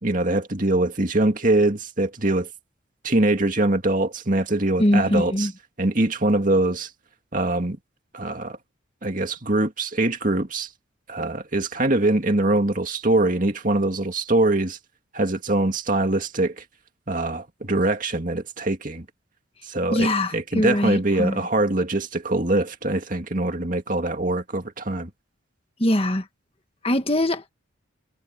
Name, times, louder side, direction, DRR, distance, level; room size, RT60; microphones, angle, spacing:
voice 1, 0.0-2.5 3.0-5.5 5.8-6.9 7.3-7.8 8.1-8.6 9.0-10.7 11.1-14.8 15.1-16.6 17.1-19.1 19.6-25.1, right 2 dB, 40° right, 2.3 m, -23 dB
voice 2, 4.8-5.5 19.9-21.4 25.8-26.2 26.8-27.5, left 1 dB, 30° left, 1.5 m, -22 dB
head